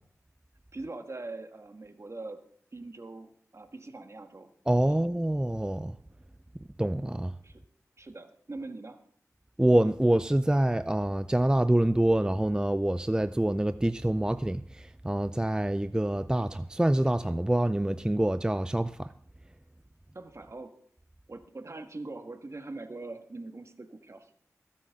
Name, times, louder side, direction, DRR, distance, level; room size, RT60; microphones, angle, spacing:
voice 1, 0.7-2.4 2.7-4.5 4.9-5.0 7.4-7.6 8.0-9.0 20.1-20.8 21.3-24.4, right 2 dB, 50° right, 1.6 m, -42 dB
voice 2, 4.7-6.0 6.8-7.3 9.6-19.1, right 1 dB, 10° right, 0.4 m, -26 dB
21.5 x 8.5 x 3.7 m
cardioid pair, 45°, 6 cm